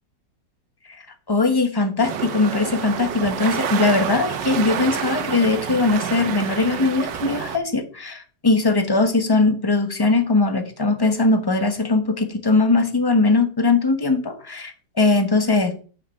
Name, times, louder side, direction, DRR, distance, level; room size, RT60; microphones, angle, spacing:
voice 1, 1.3-15.8, left 3 dB, 20° left, 0.7 m, -20 dB
sound 1, 2.0-7.6, right 8 dB, 80° right, 1.6 m, -28 dB
7.3 x 5.9 x 5.4 m
omnidirectional pair, 1.9 m